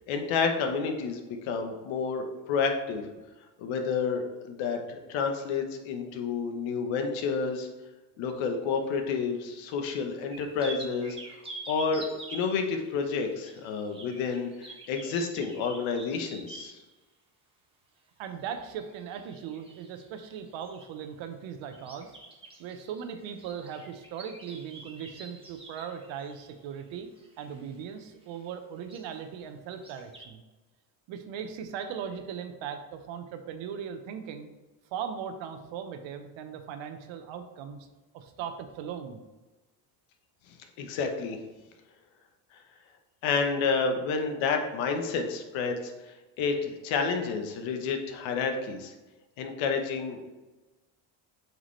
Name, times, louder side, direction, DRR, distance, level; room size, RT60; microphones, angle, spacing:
voice 1, 0.1-3.0 3.6-7.7 8.2-11.2 11.7-16.8 40.8-41.4 43.2-45.9 46.4-48.9 49.4-50.3, left 5 dB, 85° left, 5 dB, 1.1 m, -30 dB
sound 1, 10.3-16.8 18.5-21.0 21.7-27.9 28.2-28.4 28.8-29.2 29.7-30.2, right 2 dB, 10° right, 1.4 m, -47 dB
voice 2, 18.2-22.1 22.6-27.1 27.4-30.4 31.1-34.5 34.9-37.9 38.1-39.2, right 7 dB, 80° right, 7 dB, 1.0 m, -39 dB
8.0 x 4.8 x 3.2 m, 1.1 s
cardioid pair, 105°, 45 cm